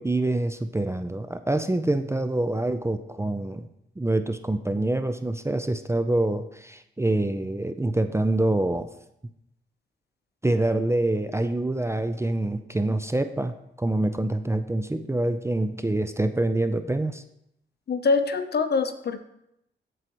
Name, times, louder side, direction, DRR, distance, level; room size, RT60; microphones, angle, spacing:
voice 1, 0.0-3.7 4.0-8.9 10.4-17.2, right 2 dB, 15° right, 9 dB, 0.5 m, -26 dB
voice 2, 17.9-19.2, left 4 dB, 50° left, 9 dB, 0.8 m, -24 dB
14.0 x 4.7 x 3.0 m, 0.80 s
cardioid pair, 55°, 21 cm